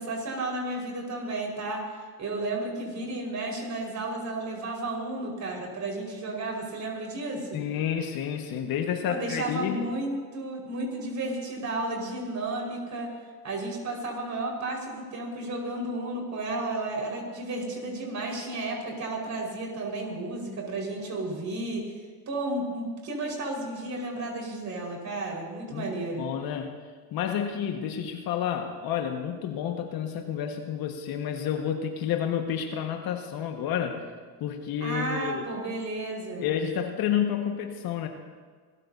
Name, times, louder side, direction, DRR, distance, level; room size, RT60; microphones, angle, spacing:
voice 1, 0.0-7.6 9.1-13.1 13.4-21.9 22.3-26.3 34.8-36.5, right 2 dB, 35° right, -1 dB, 5.0 m, -33 dB
voice 2, 7.5-9.8 25.7-25.9 26.2-26.8 27.1-34.1 34.4-35.5 36.4-38.1, left 9 dB, 50° left, 4 dB, 1.7 m, -30 dB
27.5 x 14.0 x 2.8 m, 1.5 s
supercardioid pair, 110°, 46 cm